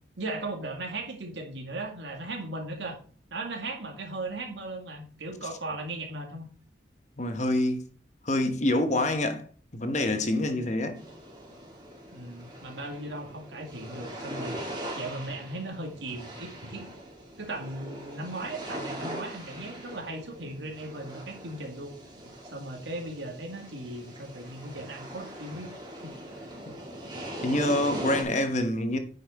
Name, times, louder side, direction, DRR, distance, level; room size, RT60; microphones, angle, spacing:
voice 1, 0.2-3.0 3.3-6.5 12.1-14.6 15.0-16.9 17.4-21.9 22.4-25.7 26.0-26.1 28.1-28.3, right 2 dB, 75° right, 2.2 m, -37 dB
voice 2, 7.2-7.8 8.2-9.4 9.7-11.0 27.4-29.0, left 1 dB, 40° left, 1.1 m, -26 dB
sound 1, 10.9-28.2, right 1 dB, 25° right, 2.4 m, -41 dB
9.2 x 5.6 x 4.1 m
head